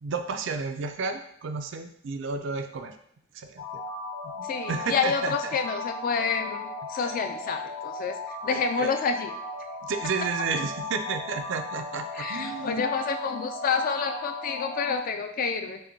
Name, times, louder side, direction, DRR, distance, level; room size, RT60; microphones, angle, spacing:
voice 1, 0.0-3.0 3.3-3.7 4.4-5.3 7.0-7.1 8.5-8.9 9.8-12.8, right 4 dB, 65° right, 7 dB, 0.4 m, -32 dB
sound 1, 3.6-15.0, left 3 dB, 80° left, 1.2 m, -36 dB
voice 2, 4.4-9.3 12.1-15.8, left 5 dB, 45° left, 6 dB, 0.3 m, -28 dB
5.4 x 2.2 x 2.7 m, 0.70 s
head